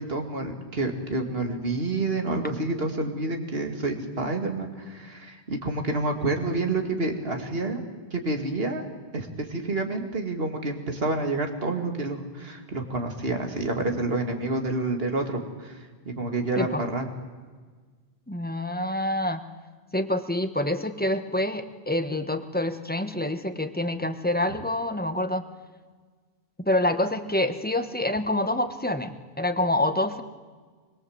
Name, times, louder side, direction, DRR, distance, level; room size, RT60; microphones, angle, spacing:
voice 1, 0.0-7.8 8.1-8.8 9.1-17.1, right 2 dB, 65° right, 4 dB, 2.6 m, -28 dB
voice 2, 18.3-19.4 19.9-25.4 26.6-30.2, left 1 dB, 10° left, 8 dB, 1.2 m, -27 dB
24.5 x 22.0 x 8.0 m, 1.5 s
omnidirectional pair, 1.1 m